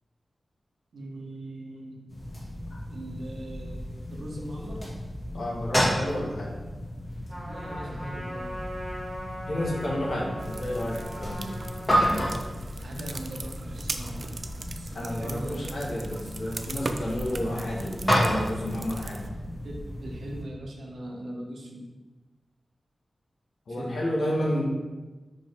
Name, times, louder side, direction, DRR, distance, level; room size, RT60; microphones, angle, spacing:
voice 1, 0.9-2.0 2.9-4.9 7.4-8.6 12.8-14.4 14.8-15.8 19.6-21.9 23.7-24.0, right 1 dB, 80° right, -1 dB, 1.2 m, -40 dB
sound 1, 2.1-20.4, equal, 25° left, 2.1 m, -32 dB
voice 2, 5.3-6.6 9.5-11.5 14.9-19.3 23.7-24.6, left 1 dB, 85° left, -4 dB, 1.9 m, -31 dB
Trumpet, 7.3-12.0, equal, ahead, 2.0 m, -39 dB
sound 2, 10.4-19.3, right 2 dB, 50° right, 0.5 m, -40 dB
5.2 x 5.0 x 4.8 m, 1.2 s
wide cardioid pair, 105°, 0 cm